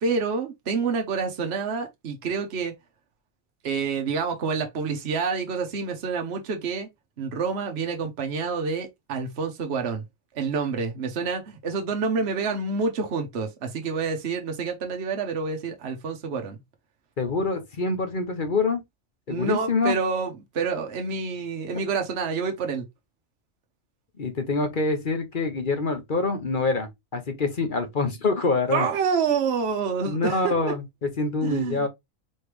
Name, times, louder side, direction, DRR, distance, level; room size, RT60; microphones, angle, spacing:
voice 1, 0.0-2.7 3.6-6.9 7.2-10.0 10.3-16.6 19.3-22.9 28.7-30.7 31.4-31.9, right 5 dB, 55° right, 1.1 m, -28 dB
voice 2, 17.2-18.8 19.3-19.9 24.2-28.9 30.0-31.9, left 3 dB, 40° left, 1.0 m, -26 dB
4.3 x 3.2 x 3.2 m
omnidirectional pair, 1.4 m